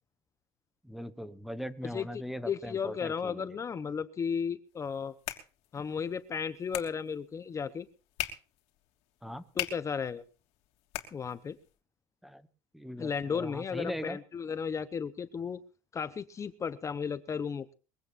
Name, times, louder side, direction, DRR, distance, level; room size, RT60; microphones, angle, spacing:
voice 1, 0.8-3.6 9.2-9.4 12.2-12.4 12.7-14.2, equal, ahead, 13 dB, 1.2 m, -40 dB
voice 2, 1.9-5.1 5.7-7.9 9.6-10.2 11.1-11.6 13.0-15.6 15.9-17.7, left 6 dB, 25° left, 12 dB, 0.9 m, -34 dB
sound 1, 4.7-11.8, left 13 dB, 70° left, 3.0 m, -43 dB
22.5 x 16.5 x 2.6 m, 0.34 s
cardioid pair, 130°, 11 cm